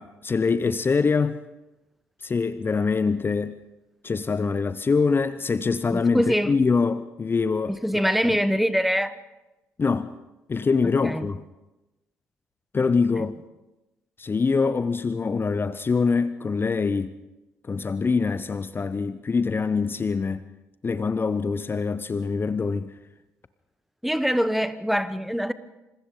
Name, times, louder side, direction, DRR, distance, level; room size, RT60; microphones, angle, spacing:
voice 1, 0.0-1.4 2.2-3.6 4.0-8.4 9.8-10.1 10.5-11.4 12.7-13.3 14.2-17.2 17.6-20.5 20.8-22.9, left 4 dB, 30° left, 0.8 m, -24 dB
voice 2, 5.9-6.5 7.7-9.2 11.0-11.3 24.0-25.5, equal, ahead, 1.2 m, -24 dB
27.5 x 26.5 x 3.9 m
figure-of-eight pair, 50°, 8 cm